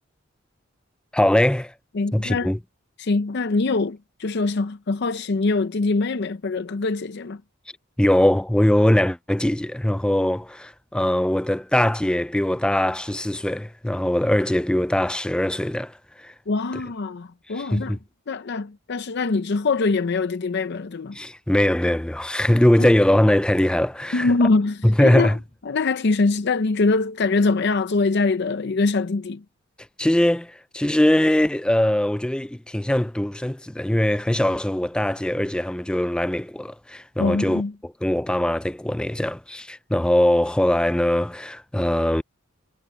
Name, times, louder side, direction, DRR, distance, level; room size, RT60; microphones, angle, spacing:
voice 1, 1.1-1.7 2.1-2.6 8.0-16.3 16.7-16.8 17.5-18.0 21.1-24.3 24.8-25.4 30.0-42.2, left 1 dB, 5° left, 0.3 m, -21 dB
voice 2, 2.0-2.5 3.0-7.4 16.5-18.0 18.3-21.2 22.8-22.9 24.1-25.3 25.7-29.4 37.2-37.7, left 3 dB, 55° left, 0.6 m, -23 dB
head